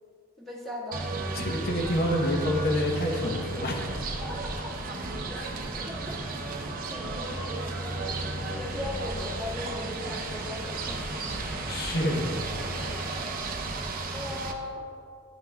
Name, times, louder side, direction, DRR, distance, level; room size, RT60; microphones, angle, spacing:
voice 1, 0.4-1.1 4.2-4.4 5.3-5.4 6.9-7.9 8.4-11.4 14.1-14.8, left 1 dB, ahead, -7 dB, 1.5 m, -38 dB
sound 1, 0.9-14.5, right 2 dB, 45° right, 0.6 m, -34 dB
voice 2, 1.3-3.9 11.3-12.2, equal, 50° left, 1 dB, 0.9 m, -28 dB
sound 2, 1.7-13.0, left 1 dB, 80° left, 0.8 m, -46 dB
11.0 x 5.6 x 2.2 m, 2.4 s
head